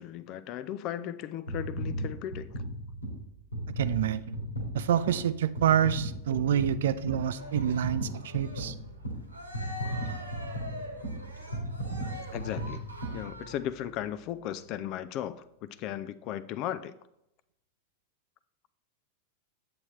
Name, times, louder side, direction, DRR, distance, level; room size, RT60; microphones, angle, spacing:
voice 1, 0.0-2.5 12.3-12.9 13.1-16.9, left 11 dB, 40° left, 16 dB, 0.4 m, -36 dB
sound 1, 1.5-13.9 14.4-14.6, right 1 dB, 85° left, 2.0 m, -36 dB
voice 2, 3.8-4.4 4.7-8.7, right 10 dB, 60° right, 15 dB, 0.4 m, -27 dB
Keyboard (musical), 6.5-9.4, left 6 dB, 5° right, 0.6 m, -46 dB
Cheering, 7.3-13.7, left 1 dB, 85° right, 1.2 m, -44 dB
8.5 x 7.7 x 3.1 m, 0.83 s
figure-of-eight pair, 90°, 0 cm